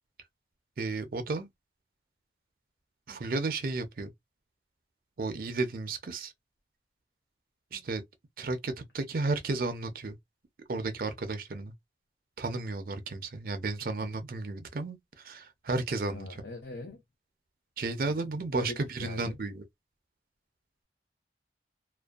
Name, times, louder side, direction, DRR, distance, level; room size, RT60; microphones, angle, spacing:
voice 1, 0.8-1.5 3.1-4.1 5.2-6.3 7.7-8.0 8.4-10.2 10.7-11.7 12.4-16.4 17.8-19.6, right 3 dB, 55° right, 0.5 m, -33 dB
voice 2, 16.1-17.0 18.5-19.4, left 2 dB, 65° left, 0.5 m, -41 dB
2.5 x 2.2 x 2.3 m
head